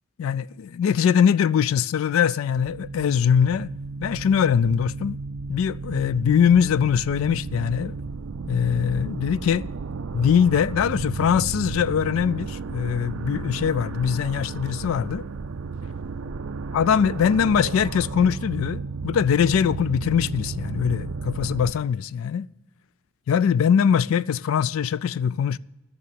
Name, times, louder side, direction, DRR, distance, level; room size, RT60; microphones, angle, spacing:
voice 1, 0.2-3.7 4.0-5.2 5.5-7.9 8.5-9.7 10.1-15.3 16.7-22.5 23.3-25.6, left 7 dB, 80° left, 0.3 m, -22 dB
sound 1, 2.5-21.7, right 4 dB, 85° right, 0.5 m, -33 dB
14.0 x 6.7 x 7.6 m
head